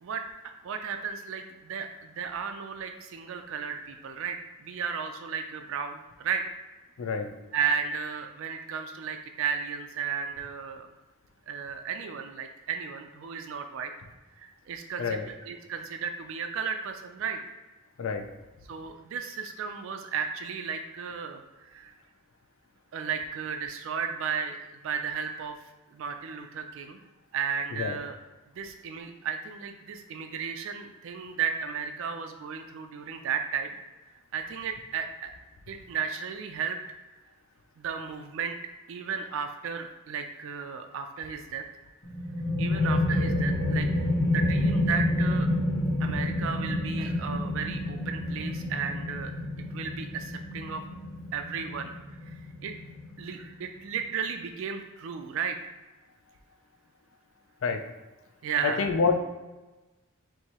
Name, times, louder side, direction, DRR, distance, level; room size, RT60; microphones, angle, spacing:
voice 1, 0.0-6.4 7.5-10.9 11.5-13.9 14.4-17.4 18.7-21.9 22.9-25.5 25.9-27.0 27.3-28.2 28.5-33.7 34.3-35.3 35.7-36.8 37.8-38.6 38.9-41.6 42.6-43.9 44.3-45.5 46.0-49.3 49.7-50.8 51.3-51.9 52.2-52.7 53.2-55.6 58.4-58.8, right 6 dB, 60° right, 6 dB, 0.3 m, -34 dB
sound 1, 42.0-53.4, left 1 dB, 15° left, 0.6 m, -29 dB
voice 2, 58.6-59.2, left 5 dB, 60° left, 6 dB, 0.4 m, -27 dB
4.6 x 3.1 x 2.9 m, 1.1 s
head